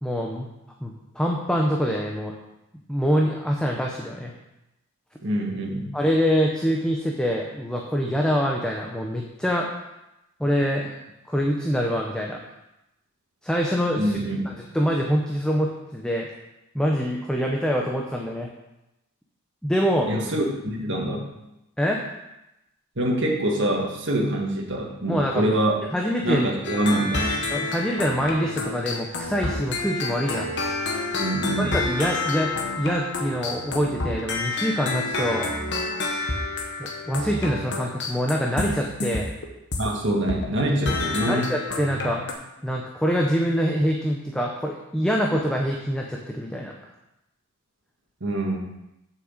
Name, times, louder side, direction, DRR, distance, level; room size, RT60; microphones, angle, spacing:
voice 1, 0.0-0.5 0.8-2.3 2.9-4.3 5.9-9.7 10.4-11.0 11.3-12.4 13.4-14.2 14.7-16.3 16.7-18.5 19.6-20.1 21.8-22.0 25.1-25.5 25.9-26.5 27.5-30.5 31.6-35.5 36.8-39.3 41.3-42.3 42.6-46.7, equal, 5° left, -1 dB, 0.7 m, -25 dB
voice 2, 5.2-5.9 14.0-14.5 20.1-21.3 23.0-25.8 26.2-27.4 31.2-31.8 39.8-41.5 48.2-48.6, right 1 dB, 55° right, -1 dB, 1.9 m, -25 dB
sound 1, 26.6-39.9 40.3-40.6 40.9-42.3, left 2 dB, 50° left, 1.4 m, -29 dB
7.6 x 6.1 x 7.3 m, 0.92 s
head